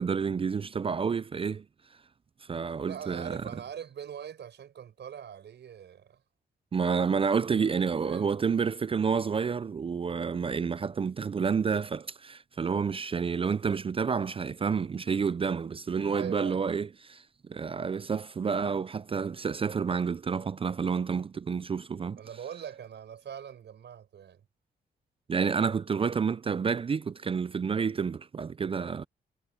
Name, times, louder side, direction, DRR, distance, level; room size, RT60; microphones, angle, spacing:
voice 1, 0.0-1.6 2.4-3.5 6.7-22.2 25.3-29.0, right 6 dB, 30° right, 0.4 m, -29 dB
voice 2, 2.8-6.2 7.6-8.3 16.1-16.6 22.2-24.4, right 9 dB, 75° right, 6.7 m, -42 dB
cardioid pair, 85°, 18 cm